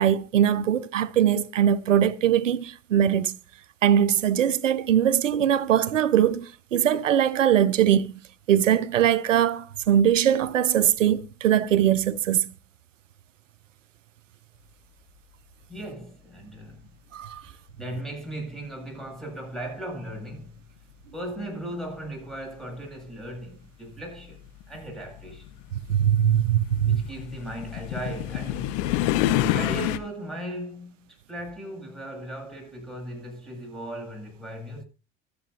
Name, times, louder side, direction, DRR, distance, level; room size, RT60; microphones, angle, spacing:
voice 1, 0.0-3.4 3.8-8.1 8.5-12.5 17.1-17.4 25.9-27.0, right 10 dB, 90° right, 0.8 m, -21 dB
voice 2, 15.7-16.9 17.4-20.6 21.1-24.4 24.7-25.6 26.8-28.9 29.5-34.8, right 1 dB, ahead, 7.7 m, -37 dB
sound 1, 22.7-22.8 23.9-30.0, left 13 dB, 70° left, 1.3 m, -28 dB
24.5 x 8.7 x 2.7 m
hypercardioid pair, 65°, 37 cm